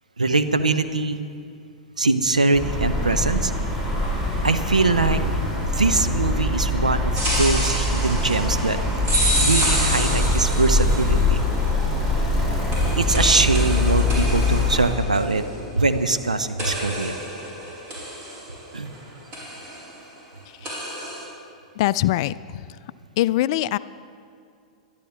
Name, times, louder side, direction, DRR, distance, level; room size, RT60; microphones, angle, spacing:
voice 1, 0.2-1.3 2.0-3.5 4.4-5.2 5.7-8.8 9.1-11.4 13.0-15.4 15.7-17.2 18.7-18.9, right 3 dB, 85° right, 10 dB, 0.7 m, -22 dB
sound 1, 2.5-14.9, left 2 dB, 20° right, 4.0 m, -23 dB
sound 2, 7.2-11.4 12.7-16.2 16.6-19.0 19.3-19.8 20.7-21.3, right 1 dB, 35° right, 4.4 m, -28 dB
voice 2, 21.8-22.6 23.2-23.8, left 15 dB, 50° left, 17 dB, 0.3 m, -22 dB
21.5 x 12.0 x 3.5 m, 2.3 s
figure-of-eight pair, 100°, 4 cm